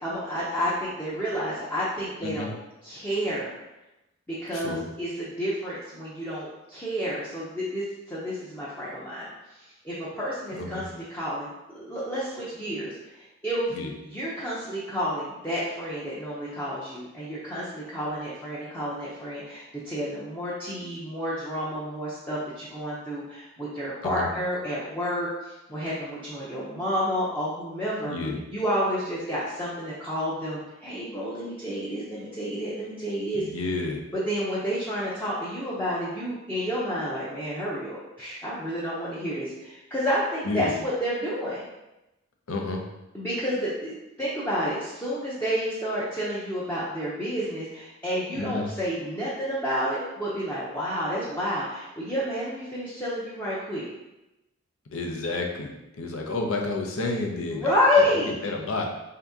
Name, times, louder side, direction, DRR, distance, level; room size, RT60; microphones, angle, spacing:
voice 1, 0.0-2.5 2.8-3.5 4.3-9.3 9.6-10.8 11.1-13.8 14.0-28.1 28.5-33.5 34.1-41.7 43.1-53.9 57.5-58.4, equal, 10° left, -8 dB, 0.6 m, -30 dB
voice 2, 4.5-4.8 10.5-10.8 13.7-13.9 24.0-24.3 28.1-28.4 33.4-34.0 40.5-40.7 42.5-42.8 48.3-48.7 54.9-57.7 58.1-58.2 58.4-58.8, left 3 dB, 70° left, 1 dB, 0.6 m, -30 dB
3.5 x 2.8 x 3.5 m, 0.96 s
head